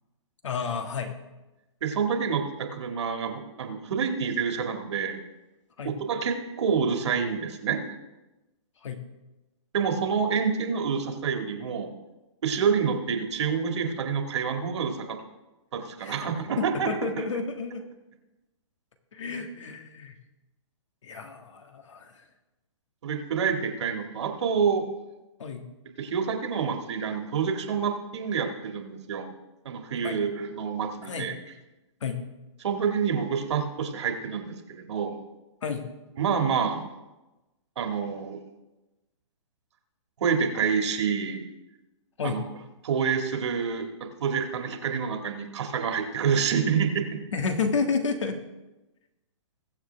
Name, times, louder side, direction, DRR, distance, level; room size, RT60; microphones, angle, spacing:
voice 1, 0.4-1.1 5.8-5.9 8.8-9.0 16.0-16.3 16.7-17.9 19.1-20.2 21.0-22.2 25.4-25.7 30.0-30.2 31.0-31.3 32.0-32.2 35.6-35.9 42.2-42.4 47.3-48.4, left 5 dB, 75° left, 5 dB, 1.9 m, -31 dB
voice 2, 1.8-5.2 5.8-7.8 9.7-11.9 12.4-15.2 15.7-17.2 23.0-24.9 26.0-29.3 29.7-31.3 32.6-35.2 36.2-36.9 37.8-38.4 40.2-41.4 42.2-42.4 42.8-43.9 44.2-47.2, right 6 dB, 65° right, 5 dB, 2.0 m, -27 dB
21.0 x 7.3 x 3.4 m, 1.0 s
hypercardioid pair, 145°, 16 cm